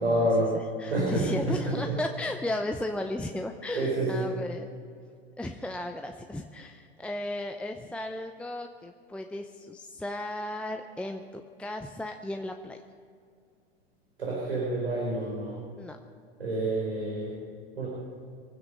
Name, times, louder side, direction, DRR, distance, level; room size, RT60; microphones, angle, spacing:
voice 1, 0.0-0.5 0.9-1.9 3.7-4.3 14.2-15.6 16.4-17.3 17.8-17.9, right 1 dB, 80° right, -4 dB, 4.6 m, -28 dB
voice 2, 0.5-4.7 5.4-12.8 15.8-16.0, left 1 dB, 5° left, 4 dB, 0.7 m, -35 dB
23.5 x 9.7 x 5.5 m, 2.3 s
hypercardioid pair, 95°, 32 cm